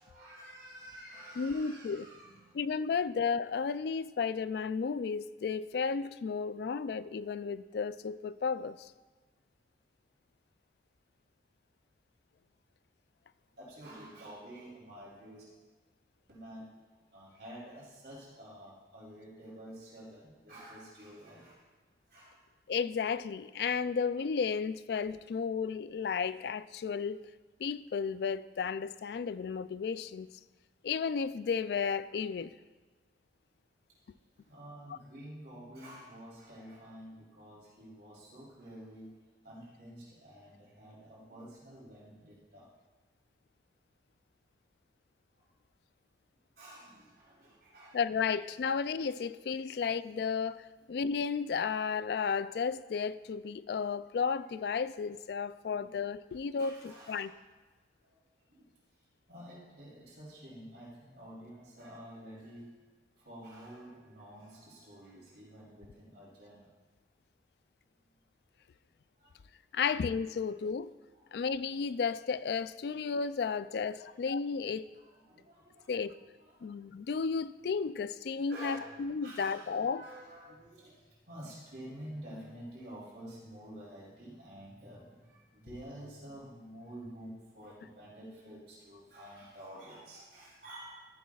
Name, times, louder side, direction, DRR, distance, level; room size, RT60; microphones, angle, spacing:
voice 1, 0.0-2.6 13.6-15.4 16.3-16.8 17.1-21.6 22.1-22.4 34.3-39.2 39.4-42.7 45.4-45.5 46.6-48.0 55.6-56.0 56.6-57.3 58.0-58.7 59.3-62.7 63.2-66.7 69.2-69.4 71.1-71.2 73.7-74.1 74.9-76.8 78.5-91.1, right 1 dB, 70° right, 3.2 m, -50 dB
voice 2, 1.4-2.1 2.5-8.9 22.7-27.2 27.6-30.4 30.8-32.5 34.9-35.0 47.9-57.3 69.7-70.9 71.3-74.9 75.9-76.2 76.6-80.0, left 5 dB, 65° left, 0.3 m, -33 dB
14.0 x 10.0 x 2.4 m
head